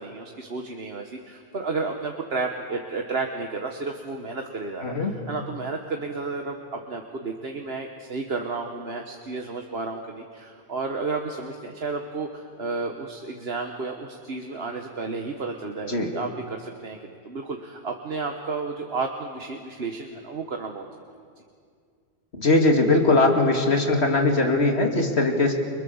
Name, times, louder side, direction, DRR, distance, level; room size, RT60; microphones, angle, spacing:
voice 1, 0.0-20.9, right 3 dB, 70° right, 3 dB, 1.6 m, -32 dB
voice 2, 22.4-25.5, left 2 dB, 80° left, 2 dB, 2.9 m, -20 dB
29.5 x 25.0 x 7.2 m, 2.2 s
omnidirectional pair, 1.1 m